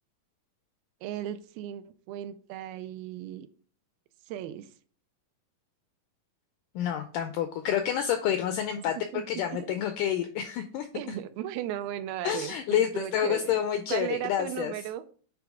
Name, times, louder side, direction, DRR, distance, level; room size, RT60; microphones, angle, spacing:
voice 1, 1.0-3.5 4.3-4.7 8.8-8.9 9.1-9.2 9.5-9.8 10.9-13.6 13.9-15.0, right 12 dB, 85° right, 11 dB, 2.4 m, -36 dB
voice 2, 6.7-8.9 9.3-10.9 12.2-14.7, left 9 dB, 85° left, 8 dB, 1.8 m, -28 dB
8.9 x 3.5 x 4.8 m, 0.43 s
omnidirectional pair, 4.3 m